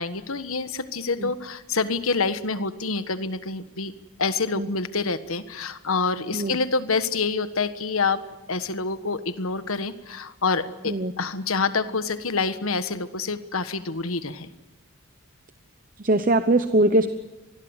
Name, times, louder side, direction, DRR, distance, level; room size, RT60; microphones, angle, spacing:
voice 1, 0.0-3.9 4.2-8.2 8.5-14.5, left 4 dB, 75° left, 11 dB, 1.4 m, -27 dB
voice 2, 16.0-17.1, right 2 dB, 40° right, 9 dB, 0.9 m, -21 dB
25.5 x 20.5 x 8.1 m, 1.0 s
head